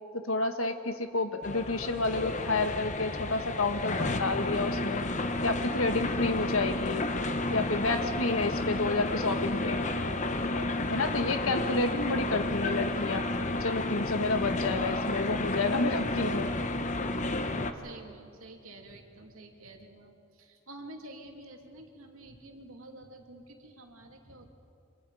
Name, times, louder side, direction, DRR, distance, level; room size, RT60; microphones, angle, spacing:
voice 1, 0.1-5.0 5.4-7.0 7.5-9.8 10.9-13.3 13.6-16.5, left 3 dB, 80° left, 7 dB, 1.6 m, -30 dB
sound 1, 1.4-17.7, left 2 dB, 35° left, 1.1 m, -31 dB
sound 2, 13.4-18.3, equal, 30° right, 2.4 m, -52 dB
voice 2, 17.7-24.5, right 2 dB, 85° right, 2 dB, 2.8 m, -49 dB
28.0 x 25.0 x 5.0 m, 2.5 s
head